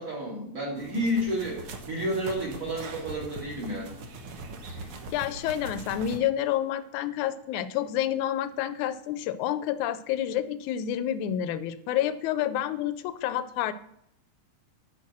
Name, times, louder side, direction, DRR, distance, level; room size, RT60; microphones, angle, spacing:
voice 1, 0.0-3.9, equal, 25° right, -3 dB, 2.9 m, -31 dB
sound 1, 0.8-6.2, right 3 dB, 60° right, 1.6 m, -41 dB
voice 2, 5.1-13.7, left 11 dB, 80° left, 13 dB, 1.9 m, -29 dB
8.4 x 6.1 x 6.0 m, 0.73 s
omnidirectional pair, 3.6 m